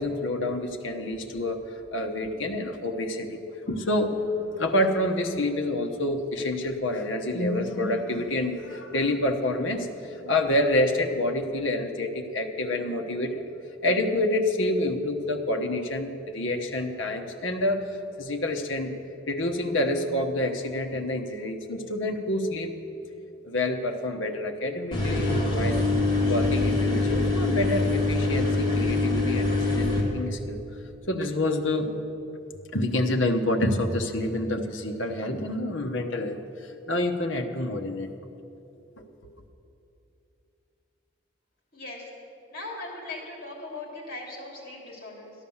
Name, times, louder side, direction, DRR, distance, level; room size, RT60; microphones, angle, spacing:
voice 1, 0.0-3.4 3.7-13.4 13.8-18.9 19.3-22.7 23.4-25.9 26.2-30.6 31.1-32.0 32.7-38.1 39.0-39.3, left 1 dB, 65° left, 4 dB, 1.1 m, -28 dB
sound 1, 24.9-30.0, left 2 dB, 25° left, 2.2 m, -24 dB
voice 2, 41.7-42.0 42.5-45.3, left 2 dB, 45° left, -1 dB, 3.0 m, -39 dB
14.0 x 10.5 x 7.1 m, 2.9 s
head